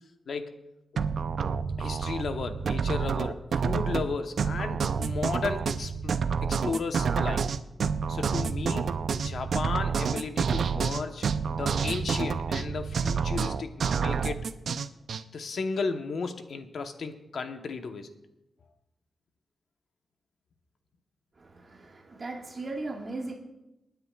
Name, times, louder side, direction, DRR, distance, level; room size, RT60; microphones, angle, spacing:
voice 1, 0.3-0.6 0.9-1.1 1.8-7.4 8.1-8.9 9.2-11.2 11.5-14.5 15.3-18.1, left 4 dB, 70° left, 7 dB, 1.0 m, -34 dB
sound 1, 1.0-15.2, right 6 dB, 70° right, 0.5 m, -28 dB
voice 2, 21.4-23.3, right 2 dB, 40° right, -1 dB, 1.7 m, -37 dB
28.0 x 9.5 x 2.4 m, 0.94 s
wide cardioid pair, 125°, 0 cm